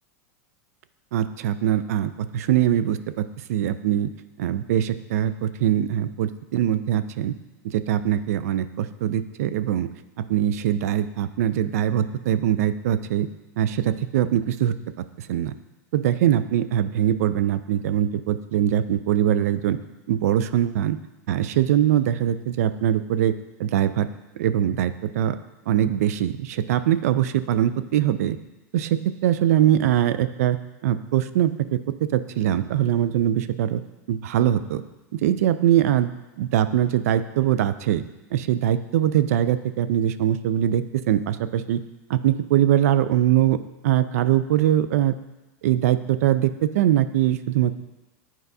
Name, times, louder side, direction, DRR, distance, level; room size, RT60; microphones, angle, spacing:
voice 1, 1.1-4.1 4.4-7.3 7.6-9.9 10.2-13.3 13.6-14.7 15.2-15.5 15.9-19.8 20.1-21.0 21.3-23.3 23.6-24.1 24.4-25.4 25.7-28.4 28.7-30.6 30.8-31.8 32.1-33.8 34.1-34.8 35.1-36.1 36.4-38.0 38.3-41.8 42.1-43.6 43.8-45.1 45.6-47.8, right 11 dB, 75° right, 13 dB, 0.4 m, -22 dB
8.8 x 4.6 x 2.7 m, 1.1 s
supercardioid pair, 135°, 8 cm